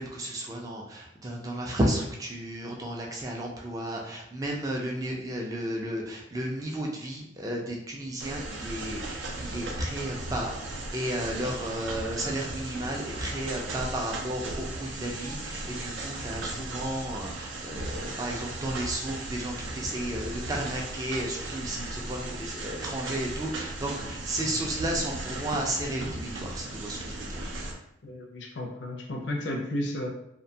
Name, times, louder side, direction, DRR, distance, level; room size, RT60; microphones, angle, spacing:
voice 1, 0.0-27.5, right 1 dB, 20° right, -1 dB, 0.3 m, -33 dB
sound 1, 8.2-27.7, right 2 dB, 80° right, 0.5 m, -37 dB
voice 2, 28.0-30.1, left 1 dB, 70° left, 1 dB, 0.5 m, -33 dB
2.5 x 2.2 x 2.6 m, 0.82 s
head